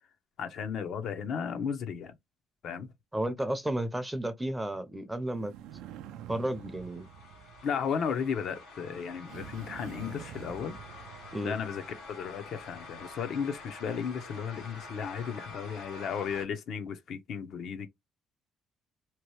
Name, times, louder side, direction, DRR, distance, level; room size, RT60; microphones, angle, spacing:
voice 1, 0.4-2.1 2.6-2.9 7.6-10.8 11.4-11.8 12.1-17.9, left 7 dB, 60° left, 0.6 m, -34 dB
voice 2, 3.1-5.5 6.3-7.1 11.3-11.5, right 1 dB, 5° right, 0.5 m, -32 dB
sound 1, 5.3-8.4 9.3-12.0, right 9 dB, 85° right, 0.4 m, -47 dB
sound 2, 6.4-16.4, left 2 dB, 80° left, 1.3 m, -48 dB
2.9 x 2.2 x 3.1 m
cardioid pair, 120°, 0 cm